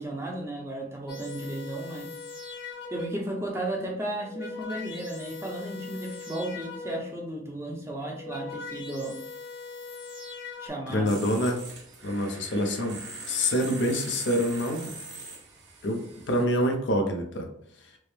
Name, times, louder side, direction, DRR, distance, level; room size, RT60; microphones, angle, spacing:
voice 1, 0.0-2.2 2.9-9.2 10.6-11.1, right 1 dB, 15° right, -1 dB, 0.6 m, -34 dB
sound 1, 1.1-3.4 4.1-7.3 8.0-10.7, left 3 dB, 85° left, 1.5 m, -40 dB
voice 2, 10.9-11.6 12.0-13.0 13.3-14.9 15.8-17.5, equal, 65° left, 3 dB, 0.7 m, -26 dB
sound 2, 11.1-16.4, right 3 dB, 60° right, 0.9 m, -42 dB
4.5 x 2.0 x 3.2 m, 0.71 s
head